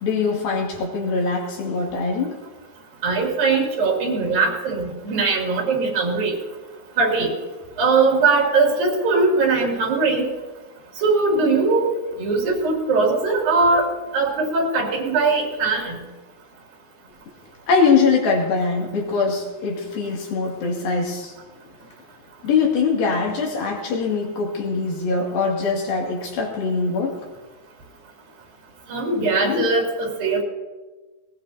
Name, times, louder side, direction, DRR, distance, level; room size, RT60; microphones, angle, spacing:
voice 1, 0.0-2.4 17.7-21.3 22.4-27.2 29.4-29.7, left 4 dB, 80° left, -1 dB, 4.2 m, -22 dB
voice 2, 3.0-6.3 7.0-7.3 7.8-10.3 11.0-11.9 12.2-13.9 14.1-16.0 28.9-30.4, right 3 dB, 75° right, -1 dB, 4.5 m, -20 dB
20.0 x 19.5 x 2.8 m, 1.2 s
omnidirectional pair, 4.2 m